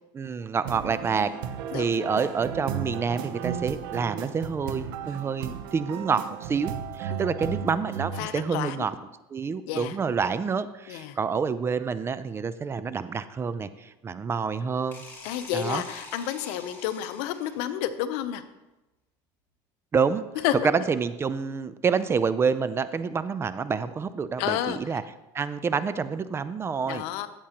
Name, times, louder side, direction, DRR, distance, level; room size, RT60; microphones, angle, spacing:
voice 1, 0.1-1.3 1.7-9.0 9.3-15.0 15.5-15.8 19.9-20.2 20.6-25.0 25.3-27.0, right 5 dB, 25° right, 14 dB, 0.4 m, -28 dB
sound 1, 0.6-8.2, right 8 dB, 85° right, 0.8 m, -35 dB
voice 2, 1.7-2.0 7.1-7.2 8.2-8.9 9.7-10.0 10.9-11.2 15.2-18.4 20.4-20.5 24.4-24.8 26.9-27.3, left 12 dB, 75° left, 11 dB, 0.8 m, -30 dB
sound 2, 14.9-17.8, left 2 dB, 20° left, 2.8 m, -46 dB
13.0 x 9.0 x 2.9 m, 1.0 s
supercardioid pair, 125°, 11 cm